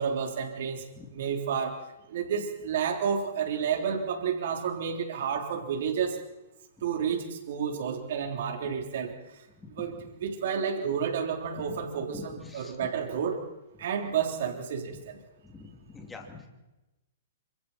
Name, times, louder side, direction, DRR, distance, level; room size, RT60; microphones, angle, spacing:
voice 1, 0.0-0.8 1.1-1.8 2.1-6.2 6.8-9.1 9.8-13.4 13.8-15.2, right 7 dB, 60° right, 3 dB, 3.6 m, -30 dB
voice 2, 9.6-10.1 11.5-11.8 12.1-12.9 15.4-16.5, left 4 dB, 10° left, 2 dB, 2.8 m, -45 dB
28.0 x 26.0 x 4.4 m, 0.98 s
hypercardioid pair, 160°, 0 cm